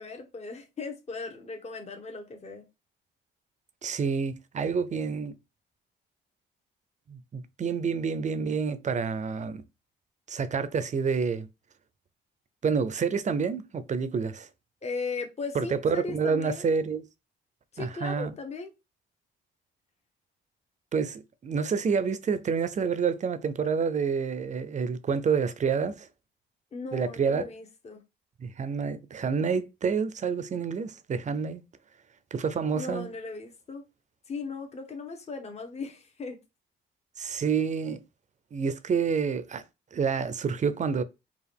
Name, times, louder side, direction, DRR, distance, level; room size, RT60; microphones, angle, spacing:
voice 1, 0.0-2.7 14.8-16.7 17.7-18.7 26.7-28.0 32.7-33.9 34.3-36.4, left 4 dB, 35° left, 1.1 m, -37 dB
voice 2, 3.8-5.4 7.1-9.6 10.3-11.5 12.6-14.5 15.5-17.0 17.8-18.3 20.9-26.1 26.9-27.4 28.4-31.6 32.3-33.1 37.2-38.0 38.5-39.6 39.9-41.0, right 5 dB, 35° right, 0.6 m, -28 dB
4.6 x 2.5 x 3.5 m
cardioid pair, 90°, 20 cm